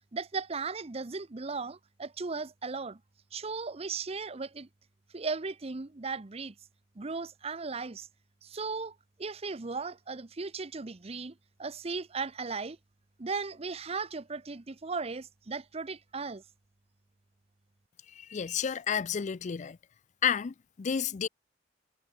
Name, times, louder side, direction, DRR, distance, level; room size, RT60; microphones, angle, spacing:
voice 1, 0.1-3.0 3.3-4.7 5.1-6.5 7.0-8.1 8.4-12.8 13.2-16.4, right 4 dB, 35° right, 0.8 m, -37 dB
voice 2, 18.2-19.8 20.2-21.3, left 8 dB, 40° left, 0.4 m, -31 dB
head